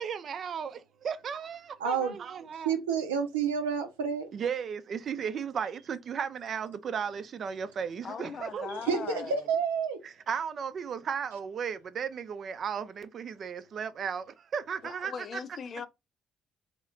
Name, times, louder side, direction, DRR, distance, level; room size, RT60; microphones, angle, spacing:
voice 1, 0.0-2.7 4.3-9.1 10.0-14.2 14.5-15.4, right 7 dB, 50° right, 0.5 m, -35 dB
voice 2, 1.8-2.2 2.6-4.3 8.9-10.0, right 6 dB, 90° right, 0.7 m, -29 dB
voice 3, 8.0-9.5 14.8-15.9, left 6 dB, 50° left, 0.6 m, -40 dB
3.2 x 3.0 x 3.7 m
hypercardioid pair, 55°, 0 cm